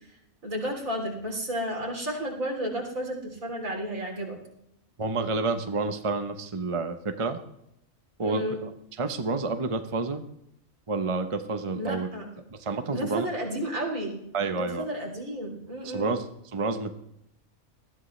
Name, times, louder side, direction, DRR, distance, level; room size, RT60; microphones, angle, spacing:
voice 1, 0.4-4.4 8.2-8.6 11.8-12.2 12.9-14.2 14.5-16.1, right 1 dB, 75° right, 0 dB, 4.0 m, -32 dB
voice 2, 5.0-7.4 8.2-8.7 9.0-10.2 10.9-12.1 12.5-13.3 14.3-14.9 15.8-16.2 16.5-17.0, right 3 dB, 25° right, 7 dB, 0.9 m, -29 dB
19.5 x 14.0 x 3.3 m, 0.78 s
omnidirectional pair, 1.4 m